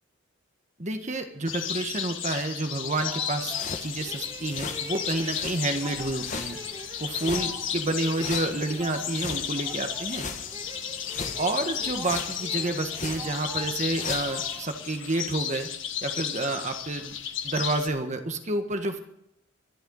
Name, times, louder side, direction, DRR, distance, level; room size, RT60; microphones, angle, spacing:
voice 1, 0.8-6.6 7.0-10.3 11.3-15.7 16.0-17.1 17.4-19.0, right 2 dB, 35° right, 6 dB, 1.5 m, -29 dB
sound 1, 1.4-17.9, left 9 dB, 65° left, 1.6 m, -34 dB
sound 2, 3.0-14.9, right 2 dB, 20° right, 1.9 m, -45 dB
sound 3, 3.4-14.6, left 4 dB, 40° left, 1.3 m, -40 dB
25.5 x 11.5 x 4.0 m, 0.77 s
head